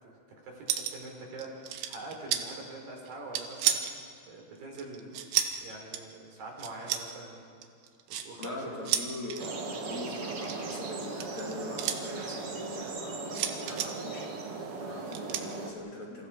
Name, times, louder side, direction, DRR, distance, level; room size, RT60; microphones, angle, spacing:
voice 1, 0.0-3.8 4.2-5.2 5.6-7.5 8.1-8.8, right 2 dB, 60° right, 0 dB, 5.7 m, -44 dB
sound 1, 0.7-1.1 1.4-2.4 3.1-4.0 4.8-5.6 5.9-6.1 6.6-7.0 7.6-8.5 8.9-9.5 10.3-12.0 13.3-13.9 15.1-15.4, right 10 dB, 85° right, 3.5 m, -31 dB
voice 2, 8.4-16.3, left 2 dB, 45° left, -2 dB, 4.1 m, -42 dB
sound 2, 9.4-15.7, right 3 dB, 40° right, 2.4 m, -38 dB
28.5 x 27.5 x 5.0 m, 2.3 s
omnidirectional pair, 4.8 m